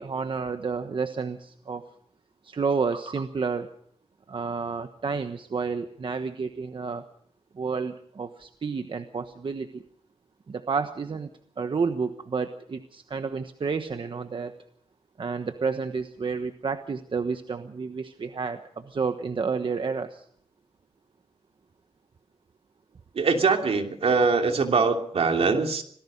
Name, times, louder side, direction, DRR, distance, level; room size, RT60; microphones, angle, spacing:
voice 1, 0.0-1.8 2.4-3.7 4.3-7.0 7.5-9.8 10.5-11.3 11.6-14.6 15.2-20.3, right 5 dB, 50° right, 8 dB, 1.2 m, -30 dB
voice 2, 23.1-25.8, right 4 dB, 70° right, 4 dB, 3.0 m, -22 dB
26.5 x 18.5 x 5.4 m, 0.63 s
wide cardioid pair, 130°, 11 cm